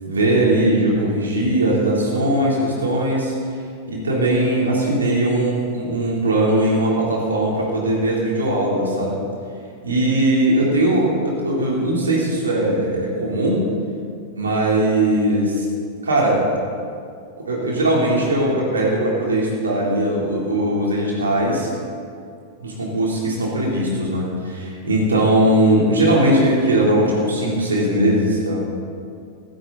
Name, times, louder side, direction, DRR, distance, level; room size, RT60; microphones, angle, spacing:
voice 1, 0.0-3.3 3.9-9.2 9.8-13.7 14.3-15.7 16.0-16.4 17.5-21.7 22.6-28.6, right 1 dB, 70° right, -3 dB, 3.6 m, -19 dB
16.0 x 14.0 x 4.1 m, 2.3 s
figure-of-eight pair, 90°, 0 cm